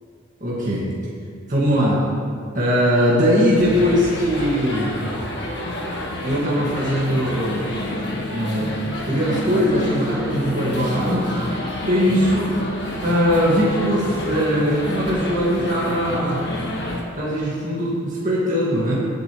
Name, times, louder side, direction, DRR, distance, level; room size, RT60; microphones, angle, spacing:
voice 1, 0.4-0.9 1.5-2.0 2.5-4.9 6.2-7.7 8.3-8.7 9.1-11.3 11.8-12.5 13.0-16.4 17.1-19.0, equal, 40° right, -7 dB, 1.8 m, -20 dB
sound 1, 3.5-17.0, left 1 dB, 55° left, 1.6 m, -29 dB
17.5 x 8.0 x 3.1 m, 2.3 s
head